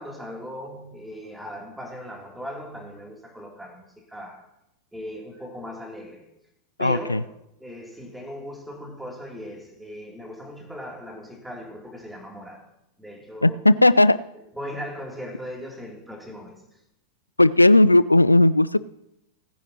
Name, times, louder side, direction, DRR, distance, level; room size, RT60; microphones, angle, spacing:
voice 1, 0.0-4.5 4.9-6.3 6.8-12.7 13.0-13.6 14.5-16.8, equal, 5° right, 2.9 m, -38 dB
voice 2, 6.8-7.2 13.4-14.2 17.4-18.8, left 2 dB, 85° left, 0.4 m, -16 dB
18.5 x 10.0 x 2.9 m
figure-of-eight pair, 90°, 0 cm